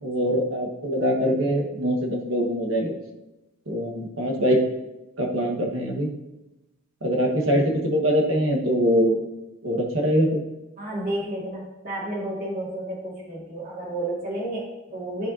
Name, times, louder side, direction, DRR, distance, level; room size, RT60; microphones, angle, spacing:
voice 1, 0.0-2.9 3.7-4.6 5.2-6.1 7.0-9.2 9.6-10.4, equal, 65° right, 2 dB, 1.3 m, -23 dB
voice 2, 10.8-15.3, right 1 dB, 40° right, -4 dB, 2.4 m, -31 dB
11.0 x 5.1 x 2.7 m, 1.0 s
head